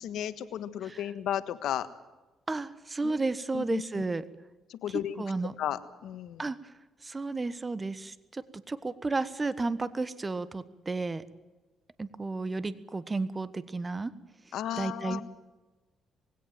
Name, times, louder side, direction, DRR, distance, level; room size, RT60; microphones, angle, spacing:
voice 1, 0.0-1.9 3.0-3.2 3.5-4.1 4.7-5.2 5.6-6.5 14.5-15.2, left 11 dB, 80° left, 12 dB, 1.5 m, -34 dB
voice 2, 2.5-4.2 5.2-5.5 6.4-6.7 7.0-11.2 12.0-14.1 14.8-15.2, right 3 dB, 25° right, 15 dB, 1.2 m, -32 dB
21.0 x 17.0 x 9.1 m, 1.2 s
cardioid pair, 90°, 0 cm